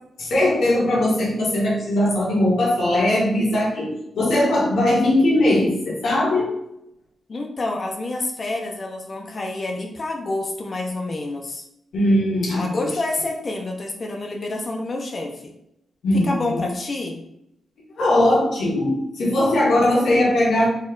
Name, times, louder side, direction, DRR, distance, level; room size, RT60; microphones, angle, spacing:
voice 1, 0.2-6.5 11.9-12.9 16.0-16.6 18.0-20.7, left 1 dB, 80° left, -5 dB, 1.4 m, -20 dB
voice 2, 7.3-11.6 12.6-15.5 16.1-17.2, left 2 dB, 35° left, 2 dB, 0.5 m, -28 dB
4.2 x 2.2 x 3.7 m, 0.80 s
wide cardioid pair, 150°, 0 cm